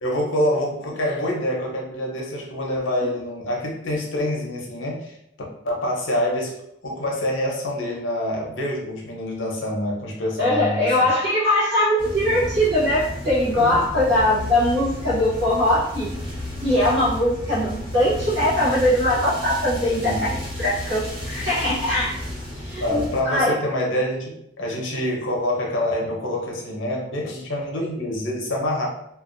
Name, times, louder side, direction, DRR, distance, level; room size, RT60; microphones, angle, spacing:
voice 1, 0.0-5.2 5.6-6.5 6.8-10.9 13.6-13.8 19.8-20.2 22.8-28.9, left 1 dB, 80° left, -2 dB, 0.7 m, -26 dB
voice 2, 10.4-16.1 16.6-22.2 22.5-23.6, left 1 dB, 60° right, -8 dB, 0.8 m, -21 dB
sound 1, 12.0-23.2, left 1 dB, 25° right, 0.8 m, -32 dB
2.5 x 2.3 x 2.5 m, 0.77 s
head